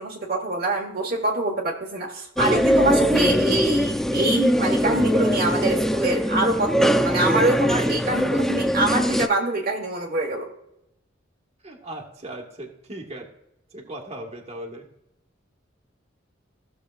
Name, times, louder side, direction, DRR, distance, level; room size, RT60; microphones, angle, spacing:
voice 1, 0.0-10.5, right 2 dB, 50° right, 0 dB, 1.2 m, -25 dB
sound 1, 2.4-9.3, equal, ahead, 0.3 m, -21 dB
voice 2, 11.6-13.3 13.7-14.8, right 1 dB, 35° right, 2 dB, 1.4 m, -37 dB
15.0 x 6.8 x 2.4 m, 0.83 s
head